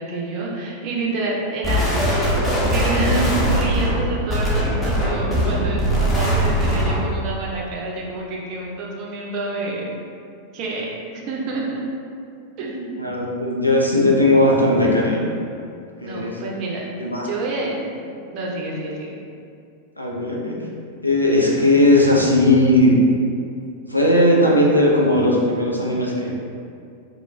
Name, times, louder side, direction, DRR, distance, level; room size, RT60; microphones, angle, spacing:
voice 1, 0.0-1.9 2.2-9.8 10.5-10.9 11.1-11.8 12.6-13.1 16.0-16.9 17.2-17.7 18.0-19.1, right 2 dB, 40° right, -3 dB, 0.5 m, -28 dB
sound 1, 1.6-7.1, equal, 10° left, 0.7 m, -20 dB
voice 2, 13.0-15.4 16.0-16.4 17.0-17.3 20.0-20.6 21.0-23.0 23.9-26.3, left 1 dB, 85° left, -3 dB, 0.4 m, -17 dB
2.3 x 2.0 x 3.1 m, 2.4 s
figure-of-eight pair, 90°, 0 cm